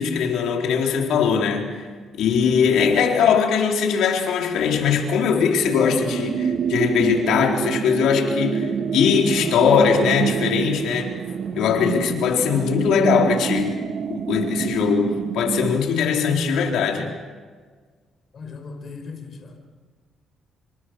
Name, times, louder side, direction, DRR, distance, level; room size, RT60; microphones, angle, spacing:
voice 1, 0.0-1.7 2.2-11.1 11.5-13.8 14.1-17.1, left 6 dB, 85° left, 4.1 m, -20 dB
sound 1, 5.6-15.8, right 7 dB, 60° right, 1.4 m, -27 dB
voice 2, 18.3-19.6, left 4 dB, 50° left, 5.3 m, -38 dB
28.0 x 26.5 x 6.5 m
cardioid pair, 90°, 0 cm